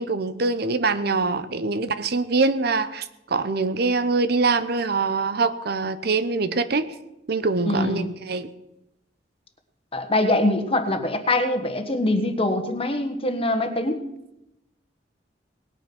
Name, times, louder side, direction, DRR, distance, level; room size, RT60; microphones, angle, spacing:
voice 1, 0.0-6.9 7.3-8.5, right 3 dB, 60° right, 13 dB, 0.8 m, -24 dB
voice 2, 7.6-8.1 9.9-14.0, left 1 dB, 30° left, 7 dB, 1.5 m, -23 dB
19.0 x 9.0 x 6.1 m, 0.89 s
head